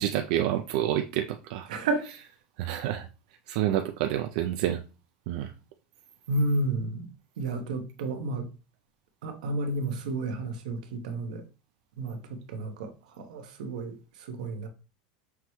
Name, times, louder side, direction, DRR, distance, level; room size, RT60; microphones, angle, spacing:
voice 1, 0.0-1.7 2.6-3.1 3.5-4.8 5.3-5.5, right 12 dB, 70° right, 0.3 m, -28 dB
voice 2, 1.7-2.1 6.3-7.1 7.4-8.5 9.2-11.4 12.0-14.7, right 2 dB, 85° right, 0.9 m, -31 dB
5.8 x 2.2 x 3.0 m
supercardioid pair, 125°, 4 cm